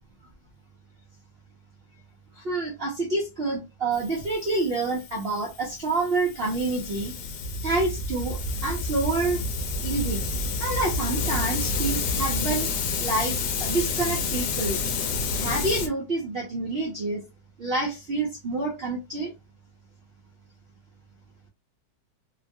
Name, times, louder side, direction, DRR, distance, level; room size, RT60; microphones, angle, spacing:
voice 1, 2.4-7.1 7.6-9.4 9.8-10.2 10.6-12.7 13.0-14.8 15.3-17.2 17.6-19.3, right 3 dB, 75° right, 0.5 m, -28 dB
Hiss, 3.9-15.9, left 5 dB, 80° left, 1.2 m, -31 dB
sound 1, 7.4-12.7, right 1 dB, 60° left, 0.8 m, -32 dB
3.0 x 2.3 x 2.6 m
omnidirectional pair, 2.0 m